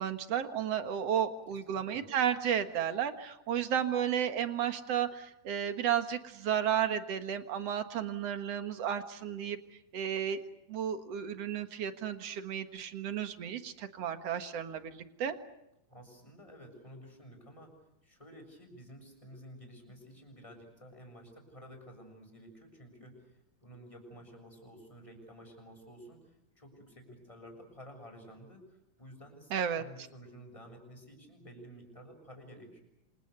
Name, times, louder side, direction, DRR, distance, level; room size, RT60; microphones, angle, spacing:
voice 1, 0.0-9.6 9.9-10.4 10.7-15.4 29.5-29.8, right 9 dB, 55° right, 8 dB, 2.1 m, -33 dB
voice 2, 1.5-2.1 15.9-17.8 18.0-32.8, equal, 10° left, 3 dB, 7.1 m, -52 dB
28.5 x 27.0 x 6.8 m, 0.87 s
omnidirectional pair, 4.4 m